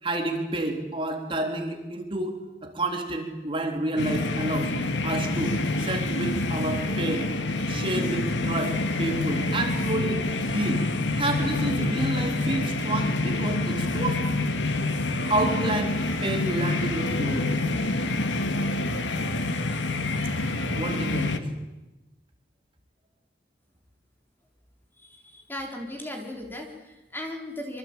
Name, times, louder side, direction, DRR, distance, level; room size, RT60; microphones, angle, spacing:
voice 1, 0.0-2.4 2.6-4.7 5.0-7.3 7.7-10.9 11.2-14.2 15.3-17.5 20.7-21.5, right 2 dB, 30° right, 2 dB, 3.6 m, -29 dB
sound 1, 4.0-21.4, left 2 dB, 85° left, 2.1 m, -27 dB
voice 2, 25.0-27.8, left 1 dB, 10° left, 1 dB, 3.7 m, -37 dB
25.5 x 25.0 x 8.9 m, 1.1 s
head